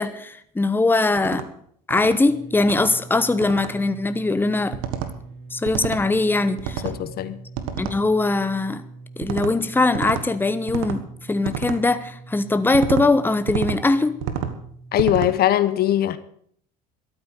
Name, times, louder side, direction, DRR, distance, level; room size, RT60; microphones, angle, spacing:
voice 1, 0.0-1.4 1.9-4.8 5.5-6.8 7.8-8.8 9.2-14.2, left 3 dB, 10° left, 1.1 m, -21 dB
sound 1, 1.2-1.5 1.9-2.2 2.6-2.9 3.4-3.7 4.7-5.1 5.7-6.0 6.6-7.0 7.6-8.0 9.2-9.5 9.9-10.3 10.7-11.0 11.4-11.8 12.7-13.1 13.5-13.8 14.2-14.5 15.0-15.3, right 9 dB, 75° right, 1.6 m, -29 dB
sound 2, 2.2-15.0, right 3 dB, 60° right, 3.3 m, -43 dB
voice 2, 6.8-7.4 14.9-16.2, left 12 dB, 50° left, 1.0 m, -21 dB
13.0 x 8.8 x 8.0 m
hypercardioid pair, 85°, 20 cm